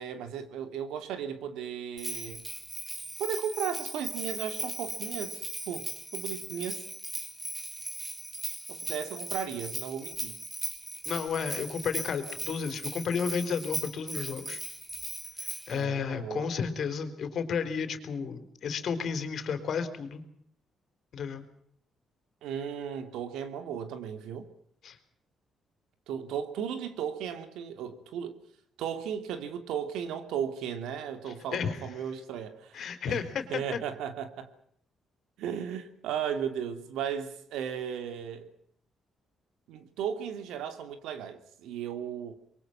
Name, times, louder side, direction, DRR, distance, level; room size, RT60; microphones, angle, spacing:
voice 1, 0.0-2.4 3.2-5.9 6.1-6.9 8.7-10.4 15.7-16.5 22.4-24.5 26.1-28.4 28.8-33.2 33.5-34.5 35.4-38.5 39.7-42.3, right 8 dB, 90° right, 3.0 m, -35 dB
Bell, 2.0-15.8, right 1 dB, 10° right, 3.2 m, -38 dB
voice 2, 11.1-14.6 15.4-20.2 21.1-21.4 24.8-25.0 31.3-31.8 32.7-33.8, left 6 dB, 60° left, 4.1 m, -32 dB
25.0 x 22.5 x 5.9 m
cardioid pair, 90°, 0 cm